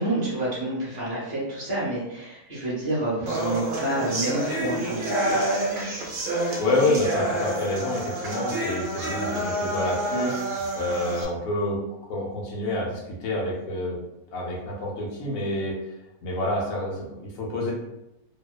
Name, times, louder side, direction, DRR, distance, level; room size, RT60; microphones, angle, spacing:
voice 1, 0.0-5.5, right 1 dB, 20° right, -8 dB, 0.6 m, -28 dB
sound 1, 3.3-11.2, right 1 dB, 80° right, 0.4 m, -28 dB
voice 2, 6.6-11.8 12.1-14.0 14.3-15.8 16.2-17.7, left 1 dB, 70° left, -2 dB, 1.0 m, -28 dB
2.7 x 2.0 x 2.3 m, 0.89 s
omnidirectional pair, 1.6 m